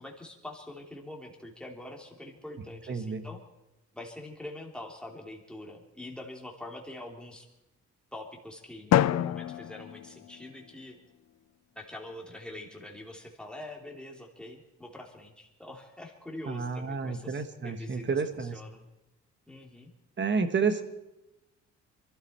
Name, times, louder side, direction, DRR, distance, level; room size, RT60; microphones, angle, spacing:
voice 1, 0.0-3.4 3.9-7.5 8.1-11.0 11.7-18.8 19.5-19.9, left 1 dB, 5° left, 0 dB, 3.2 m, -44 dB
voice 2, 2.9-3.2 16.5-18.6 20.2-20.8, right 5 dB, 40° right, 10 dB, 1.5 m, -30 dB
Drum, 8.9-10.9, left 12 dB, 60° left, 0.6 m, -28 dB
23.5 x 13.0 x 4.4 m, 0.96 s
cardioid pair, 90°, 30 cm